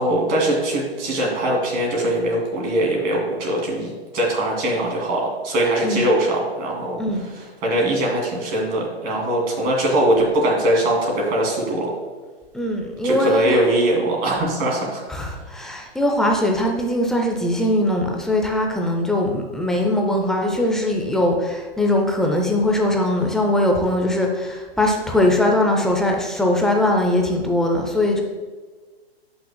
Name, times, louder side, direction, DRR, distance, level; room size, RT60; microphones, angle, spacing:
voice 1, 0.0-7.0 7.3-11.9 13.0-15.0, right 1 dB, 30° right, -1 dB, 2.5 m, -21 dB
voice 2, 12.5-13.6 15.1-28.2, left 1 dB, ahead, 1 dB, 0.4 m, -21 dB
13.5 x 5.9 x 2.2 m, 1.4 s
hypercardioid pair, 130°, 32 cm